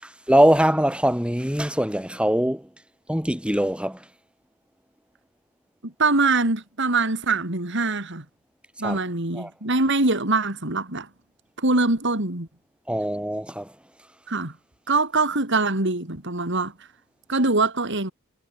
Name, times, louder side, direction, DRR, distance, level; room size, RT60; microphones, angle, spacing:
voice 1, 0.0-2.7 3.1-4.0 8.8-9.0 9.3-9.5 12.9-13.7, equal, 5° right, 5.8 m, -22 dB
voice 2, 5.8-8.3 8.8-11.1 11.6-12.5 14.3-14.5 14.9-16.7 17.3-18.1, right 3 dB, 55° right, 3.8 m, -23 dB
head